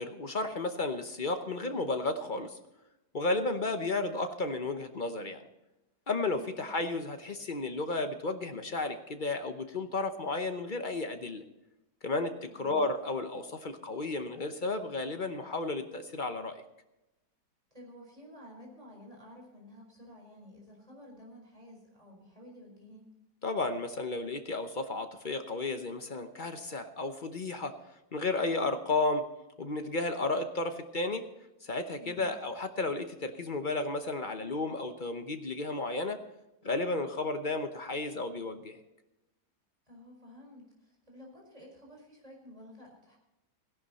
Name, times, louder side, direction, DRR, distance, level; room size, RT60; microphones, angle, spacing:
voice 1, 0.0-2.6 3.1-5.4 6.1-11.4 12.0-16.6 23.4-27.8 28.1-29.3 29.6-31.3 31.6-36.2 36.6-38.8, left 2 dB, 40° left, 8 dB, 0.7 m, -33 dB
voice 2, 12.4-12.8 17.7-23.0 32.0-32.3 39.9-43.2, left 1 dB, 20° right, -1 dB, 4.7 m, -52 dB
17.0 x 11.5 x 4.2 m, 0.96 s
omnidirectional pair, 1.9 m